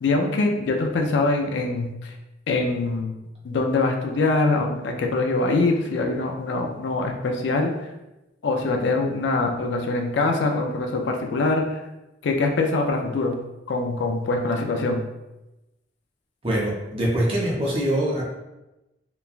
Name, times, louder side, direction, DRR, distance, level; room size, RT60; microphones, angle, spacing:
voice 1, 0.0-2.1 2.5-3.1 3.4-7.7 8.4-11.8 12.2-13.4 13.7-15.0, left 3 dB, 65° left, 2 dB, 0.4 m, -23 dB
voice 2, 16.4-18.2, right 1 dB, 30° right, -4 dB, 0.6 m, -23 dB
3.0 x 2.2 x 2.4 m, 0.97 s
head